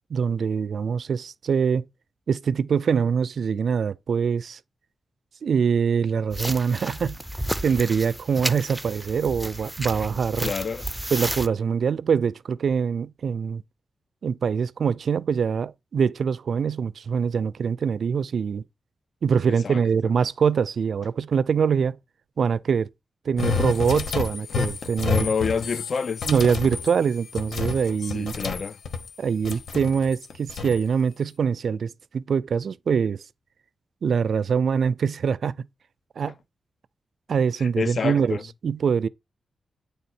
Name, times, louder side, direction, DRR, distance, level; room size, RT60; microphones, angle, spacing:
voice 1, 0.1-1.8 2.3-4.6 5.4-7.2 7.6-10.5 11.1-13.6 14.2-18.6 19.2-22.0 22.4-22.9 23.3-25.3 26.3-28.3 29.2-33.2 34.0-35.6 36.2-36.3 37.3-38.4 38.6-39.1, right 6 dB, 65° right, 0.3 m, -24 dB
sound 1, 6.3-11.5, right 1 dB, 5° right, 0.5 m, -32 dB
voice 2, 10.4-10.9 19.5-19.8 25.0-26.3 28.0-28.8 37.6-38.4, left 5 dB, 55° left, 0.4 m, -28 dB
sound 2, 23.4-29.1 29.4-30.8, left 5 dB, 80° left, 1.1 m, -30 dB
9.4 x 3.3 x 4.3 m
wide cardioid pair, 125°, 0 cm